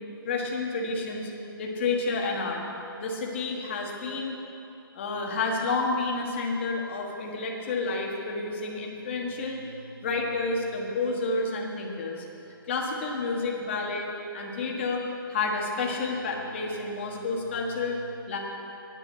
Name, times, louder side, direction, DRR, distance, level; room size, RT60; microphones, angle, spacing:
voice 1, 0.2-1.3 1.6-2.6 3.0-4.4 4.9-9.6 10.0-12.2 12.7-18.4, left 3 dB, 30° left, 0 dB, 1.4 m, -30 dB
9.5 x 9.0 x 8.0 m, 2.9 s
hypercardioid pair, 180°, 12 cm